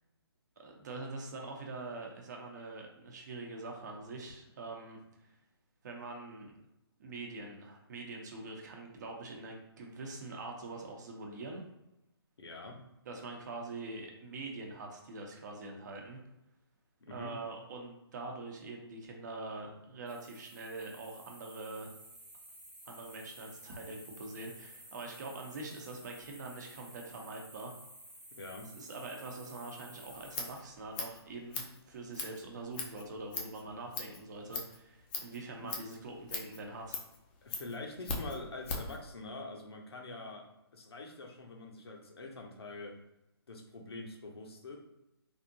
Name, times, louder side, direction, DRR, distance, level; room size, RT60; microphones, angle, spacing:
voice 1, 0.6-5.0 5.8-6.5 7.0-11.6 13.1-16.2 17.1-21.9 22.9-27.7 28.7-37.0, right 3 dB, 45° right, 1 dB, 0.8 m, -44 dB
voice 2, 12.4-12.8 17.0-17.4 28.3-28.7 35.6-35.8 37.4-43.0 43.5-44.8, left 2 dB, 70° left, 2 dB, 0.8 m, -45 dB
sound 1, 20.1-30.5, right 1 dB, 10° right, 0.9 m, -53 dB
Scissors, 30.1-39.0, left 4 dB, 20° left, 0.5 m, -41 dB
3.4 x 2.6 x 2.6 m, 0.90 s
figure-of-eight pair, 140°, 14 cm